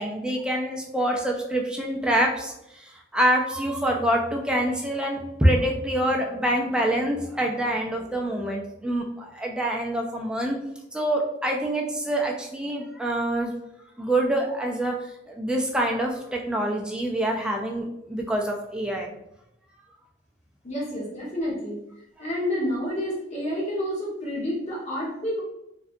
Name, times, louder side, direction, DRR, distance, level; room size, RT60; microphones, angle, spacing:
voice 1, 0.0-10.6 10.9-13.5 14.0-14.9 15.3-19.1, right 1 dB, 5° right, 0 dB, 0.3 m, -26 dB
voice 2, 20.6-21.8 22.2-25.4, left 1 dB, 35° left, -5 dB, 1.0 m, -29 dB
2.6 x 2.2 x 2.4 m, 0.83 s
head